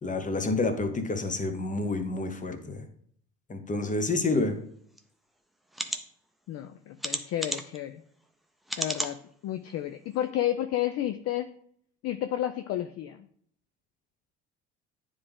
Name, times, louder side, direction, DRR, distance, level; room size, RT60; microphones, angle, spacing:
voice 1, 0.0-2.8 3.5-4.6, left 2 dB, 20° left, 8 dB, 1.1 m, -29 dB
sound 1, 5.0-5.1 5.7-6.0 7.0-7.8 8.7-9.1 9.7-9.8 10.1-10.2, equal, ahead, 0.7 m, -32 dB
voice 2, 6.5-8.0 8.8-9.2 9.4-11.5 12.0-13.3, left 12 dB, 45° left, 9 dB, 0.5 m, -31 dB
9.6 x 3.5 x 3.6 m, 0.62 s
hypercardioid pair, 60°, 35 cm